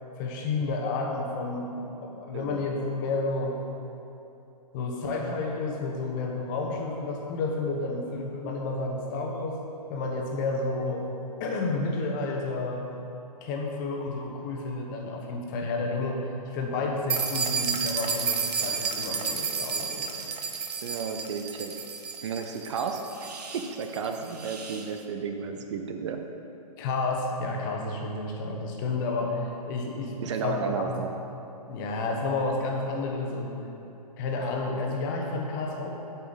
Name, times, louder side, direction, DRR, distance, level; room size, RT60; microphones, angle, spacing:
voice 1, 0.2-3.6 4.7-9.6 9.9-11.1 11.4-12.8 13.4-20.3 26.8-30.2 30.4-31.0 31.7-33.5 34.2-35.9, left 3 dB, 30° left, 1 dB, 1.0 m, -31 dB
voice 2, 2.3-2.7 20.8-21.7 22.2-26.2 30.2-31.1, right 5 dB, 45° right, 5 dB, 0.6 m, -33 dB
sound 1, 17.1-24.9, right 5 dB, 80° right, 0.9 m, -32 dB
8.1 x 7.0 x 4.0 m, 2.9 s
hypercardioid pair, 140°, 20 cm